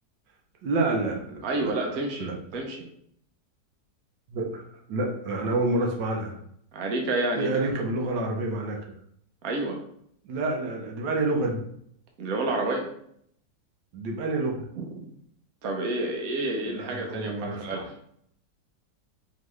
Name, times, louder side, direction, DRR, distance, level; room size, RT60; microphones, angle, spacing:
voice 1, 0.6-2.3 4.3-4.6 4.9-6.3 7.3-8.8 10.2-11.6 13.9-14.5 16.6-17.9, right 2 dB, 85° right, 1 dB, 1.5 m, -28 dB
voice 2, 1.4-2.9 6.7-7.5 9.4-9.8 12.2-12.9 14.8-15.1 15.6-17.9, right 2 dB, 60° right, 1 dB, 1.1 m, -29 dB
4.4 x 3.1 x 3.1 m, 0.68 s
omnidirectional pair, 1.9 m